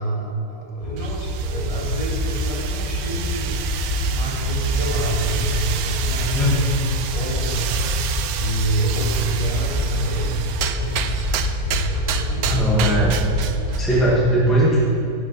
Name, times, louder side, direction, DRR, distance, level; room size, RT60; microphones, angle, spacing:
voice 1, 0.0-3.6 4.0-6.9 7.1-7.8 8.4-11.3 11.6-13.0, right 2 dB, 20° left, -4 dB, 2.2 m, -28 dB
sound 1, 0.8-14.0, equal, 65° left, 3.2 m, -25 dB
sound 2, 1.0-14.1, right 9 dB, 75° right, 1.1 m, -31 dB
voice 2, 12.4-13.1 13.8-14.8, right 1 dB, ahead, -5 dB, 1.6 m, -18 dB
16.0 x 7.2 x 5.5 m, 2.6 s
omnidirectional pair, 1.6 m